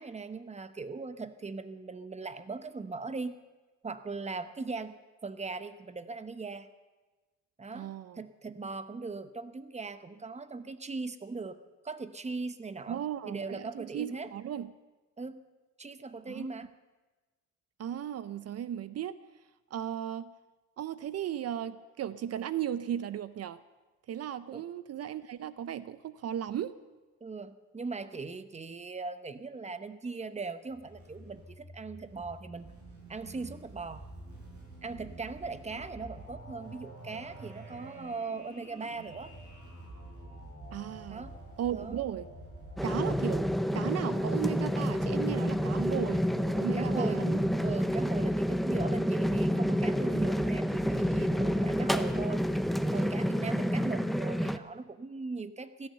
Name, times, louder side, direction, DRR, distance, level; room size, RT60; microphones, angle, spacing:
voice 1, 0.0-3.4 3.8-4.9 5.2-6.7 7.6-11.6 11.8-14.3 15.2-15.4 15.8-16.7 24.5-24.6 27.2-32.7 33.1-34.0 34.8-39.3 41.1-41.4 41.7-42.0 46.7-47.2 47.6-52.5 52.9-55.9, right 4 dB, 20° right, 12 dB, 0.9 m, -39 dB
voice 2, 7.7-8.2 12.9-14.7 16.3-16.5 17.8-19.1 19.7-20.3 20.8-23.6 24.1-26.7 40.7-41.2 41.6-42.3 42.8-43.5 43.7-47.4, right 10 dB, 55° right, 15 dB, 0.6 m, -36 dB
sound 1, 30.7-43.6, right 2 dB, 75° right, 7.0 m, -48 dB
sound 2, 42.8-54.6, equal, ahead, 0.6 m, -29 dB
15.5 x 11.5 x 6.8 m, 1.2 s
cardioid pair, 90°, 30 cm